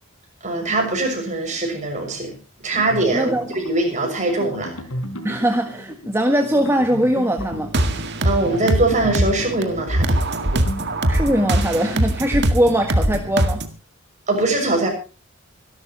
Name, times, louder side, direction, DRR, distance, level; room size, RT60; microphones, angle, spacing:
voice 1, 0.4-2.3 2.6-4.7 8.2-10.2 14.3-14.9, right 2 dB, 35° right, 6.5 m, -22 dB
sound 1, 2.7-11.3, equal, 80° left, 4.2 m, -35 dB
voice 2, 3.1-3.5 5.2-7.7 11.1-13.6, equal, 10° right, 1.6 m, -21 dB
sound 2, 7.4-13.7, right 1 dB, 50° right, 1.9 m, -22 dB
26.0 x 12.0 x 3.0 m
head